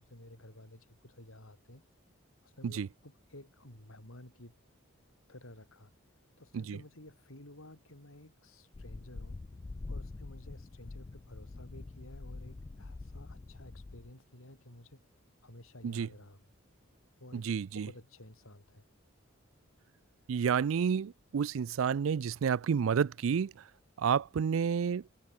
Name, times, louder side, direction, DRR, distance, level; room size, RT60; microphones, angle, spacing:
voice 1, 0.0-1.8 2.4-4.6 5.3-9.4 9.9-15.0 15.4-16.4 17.2-17.5 17.7-18.8, left 1 dB, 85° left, 5.6 m, -53 dB
sound 1, 8.7-14.1, left 3 dB, 25° left, 0.3 m, -45 dB
voice 2, 17.3-17.9 20.3-23.5 24.0-25.1, right 7 dB, 75° right, 0.4 m, -30 dB
head